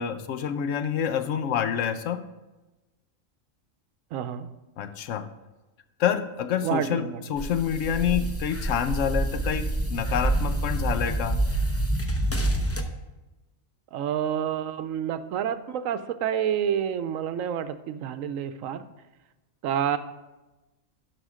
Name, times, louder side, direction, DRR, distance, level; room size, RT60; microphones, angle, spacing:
voice 1, 0.0-2.3 4.8-5.3 6.0-11.4, left 8 dB, 75° left, 11 dB, 1.0 m, -27 dB
voice 2, 4.1-4.5 6.6-7.2 13.9-18.9 19.6-20.0, right 9 dB, 90° right, 12 dB, 1.0 m, -28 dB
sound 1, 7.4-12.8, right 1 dB, 20° left, 0.4 m, -27 dB
11.5 x 5.0 x 4.9 m, 1.1 s
omnidirectional pair, 1.3 m